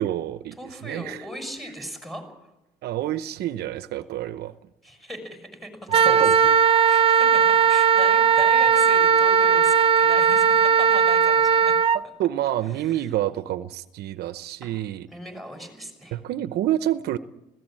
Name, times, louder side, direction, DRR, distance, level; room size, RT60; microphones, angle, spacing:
voice 1, 0.0-1.3 2.8-4.5 5.9-6.5 11.9-15.1 16.1-17.2, right 13 dB, 70° right, 12 dB, 0.9 m, -28 dB
voice 2, 0.6-2.4 4.8-6.5 6.8-11.8 12.8-13.1 14.6-14.7 15.1-16.2, equal, ahead, 6 dB, 6.2 m, -38 dB
Wind instrument woodwind instrument, 5.9-12.0, right 7 dB, 35° right, 0.7 m, -18 dB
20.0 x 17.0 x 8.9 m, 0.90 s
cardioid pair, 110°, 17 cm